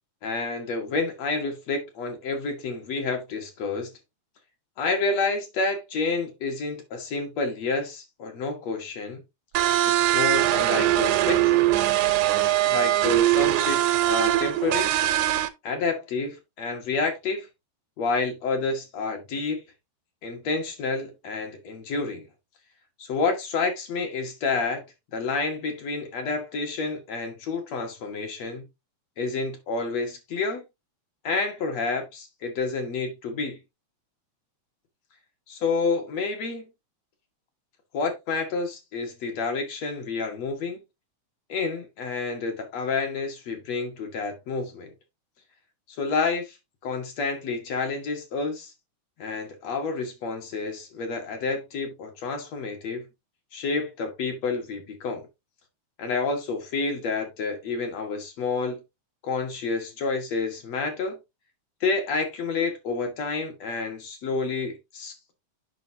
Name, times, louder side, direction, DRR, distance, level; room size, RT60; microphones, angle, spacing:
voice 1, 0.2-3.9 4.8-9.2 9.8-11.7 12.6-14.9 15.6-17.5 18.0-19.6 20.2-22.3 23.0-24.8 25.1-28.6 29.2-30.6 31.2-33.6 35.5-36.7 37.9-40.8 41.5-44.9 46.0-46.6 46.8-48.7 49.2-53.0 53.5-55.3 56.0-58.8 59.2-61.2 61.8-65.3, left 4 dB, 60° left, 2.5 m, -29 dB
sound 1, 9.5-15.5, right 14 dB, 80° right, 2.1 m, -22 dB
7.8 x 5.7 x 2.7 m
omnidirectional pair, 3.5 m